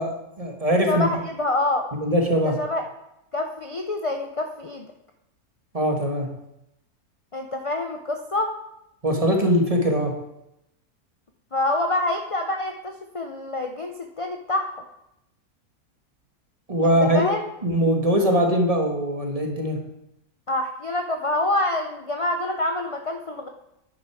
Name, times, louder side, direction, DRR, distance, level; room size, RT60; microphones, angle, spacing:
voice 1, 0.0-1.1 2.0-2.6 5.7-6.3 9.0-10.2 16.7-17.3 17.6-19.8, equal, 25° right, 2 dB, 1.6 m, -21 dB
voice 2, 0.9-1.9 2.4-2.8 3.3-4.9 7.3-8.5 11.5-14.8 16.8-17.4 20.5-23.5, left 2 dB, 45° left, 4 dB, 0.4 m, -26 dB
10.5 x 8.6 x 4.7 m, 0.84 s
omnidirectional pair, 1.6 m